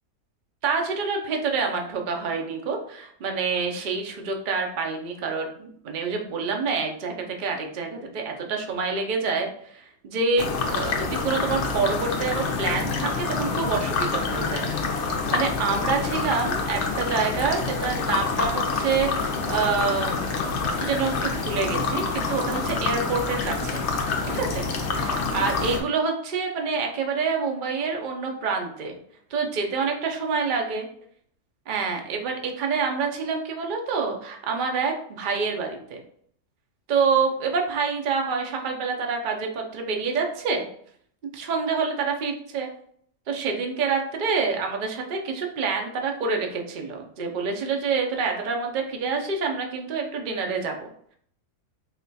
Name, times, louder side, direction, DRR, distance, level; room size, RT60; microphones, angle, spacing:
voice 1, 0.6-23.8 24.3-24.6 24.9-29.0 29.3-30.9 31.7-36.0 36.9-40.6 41.3-42.7 43.3-50.9, right 5 dB, 90° right, 2 dB, 0.4 m, -27 dB
sound 1, 10.4-25.8, left 4 dB, 60° left, 0.8 m, -27 dB
4.2 x 2.3 x 4.0 m, 0.62 s
omnidirectional pair, 1.7 m